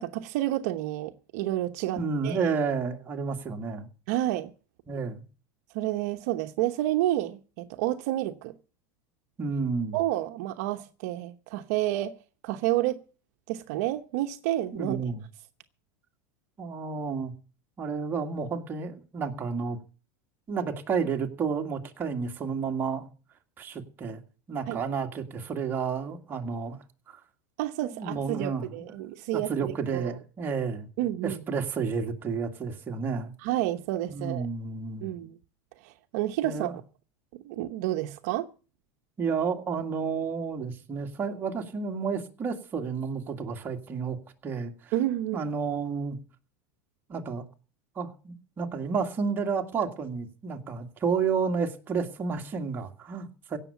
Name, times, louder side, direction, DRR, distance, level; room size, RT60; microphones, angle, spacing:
voice 1, 0.0-2.5 4.1-4.5 5.7-8.5 9.9-12.1 12.4-13.0 13.5-15.0 24.7-24.8 27.6-30.1 31.0-31.4 33.4-34.5 35.0-35.4 35.8-36.7 37.3-38.5 44.9-45.4, right 14 dB, 60° right, 1.0 m, -30 dB
voice 2, 2.0-3.9 4.9-5.2 9.4-10.0 14.7-15.2 16.6-17.3 17.8-19.8 20.5-23.1 23.6-24.2 24.5-26.8 27.1-27.2 27.8-28.8 29.3-30.9 31.2-33.3 34.1-35.1 36.4-36.8 39.2-44.2 44.4-44.9 45.3-46.2 47.1-47.4 48.0-53.6, right 5 dB, 20° right, 2.0 m, -31 dB
16.5 x 6.8 x 8.3 m
supercardioid pair, 150°, 9 cm